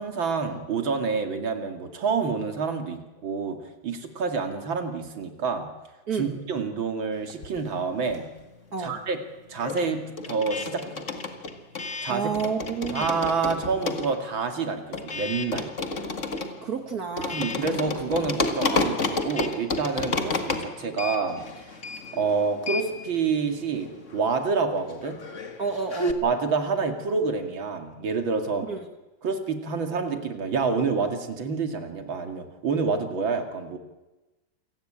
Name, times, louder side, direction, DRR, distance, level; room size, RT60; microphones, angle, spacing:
voice 1, 0.0-3.6 3.8-5.7 6.2-8.3 8.8-9.2 9.5-11.1 12.0-12.3 12.9-15.7 17.3-21.7 22.1-25.2 26.2-28.7 29.2-33.8, right 4 dB, 85° right, 5 dB, 3.1 m, -28 dB
voice 2, 6.1-6.4 8.7-9.0 12.1-13.1 16.6-17.4 25.6-26.2 28.6-28.8, right 5 dB, 50° right, 5 dB, 2.0 m, -30 dB
sound 1, 7.3-8.6 8.8-26.1, left 3 dB, 40° left, 2.0 m, -32 dB
27.5 x 18.5 x 8.9 m, 1.1 s
omnidirectional pair, 2.1 m